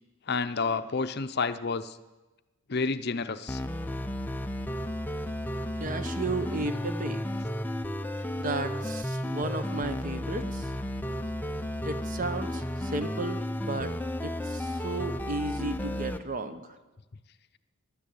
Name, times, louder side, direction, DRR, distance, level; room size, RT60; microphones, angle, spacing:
voice 1, 0.3-2.0 2.7-3.6, left 4 dB, 50° left, 11 dB, 0.6 m, -30 dB
sound 1, 3.5-16.2, left 1 dB, 10° left, 0.5 m, -33 dB
voice 2, 5.8-7.2 8.3-10.7 11.8-13.9 14.2-16.7, right 3 dB, 40° right, 9 dB, 1.0 m, -34 dB
14.0 x 11.5 x 8.6 m, 1.1 s
head